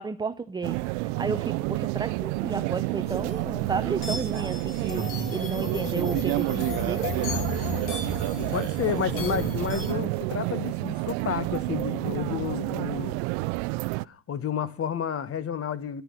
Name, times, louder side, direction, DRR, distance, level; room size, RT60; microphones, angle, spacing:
voice 1, 0.0-7.0, right 4 dB, 10° right, 0.6 m, -32 dB
sound 1, 0.6-14.1, right 23 dB, 60° right, 0.6 m, -29 dB
sound 2, 3.1-9.9, left 4 dB, 45° left, 6.2 m, -35 dB
voice 2, 8.4-13.2 14.0-16.0, left 8 dB, 30° left, 1.4 m, -31 dB
11.0 x 10.0 x 9.1 m
hypercardioid pair, 95°, 48 cm